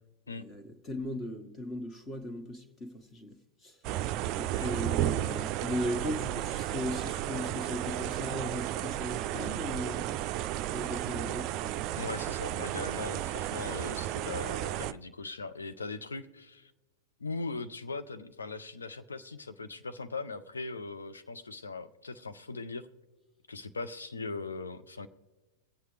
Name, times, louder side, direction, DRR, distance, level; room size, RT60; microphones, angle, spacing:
voice 1, 0.4-3.4 3.6-3.8 4.4-10.1 10.7-11.8, left 1 dB, 25° left, 1.5 m, -37 dB
sound 1, 3.8-14.9, right 13 dB, 45° right, 0.4 m, -33 dB
voice 2, 12.0-16.7 17.2-22.9 23.5-25.1, left 3 dB, 80° left, 0.7 m, -39 dB
22.0 x 8.3 x 3.3 m
figure-of-eight pair, 95°, 0 cm